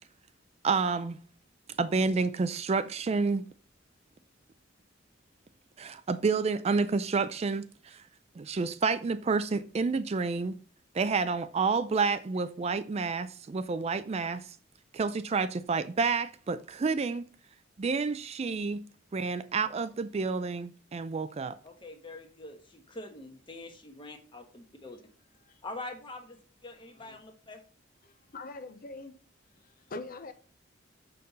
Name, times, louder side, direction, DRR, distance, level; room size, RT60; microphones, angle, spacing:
voice 1, 0.6-1.2 1.8-3.5 5.8-8.0 8.4-10.6 10.9-14.5 14.9-17.3 17.8-18.8 19.1-21.6, right 4 dB, 35° right, 0.4 m, -29 dB
voice 2, 21.6-25.1 25.6-27.6, left 2 dB, 25° left, 1.2 m, -45 dB
voice 3, 28.0-29.1 29.6-30.3, left 2 dB, 45° left, 0.6 m, -43 dB
6.6 x 5.3 x 4.1 m
head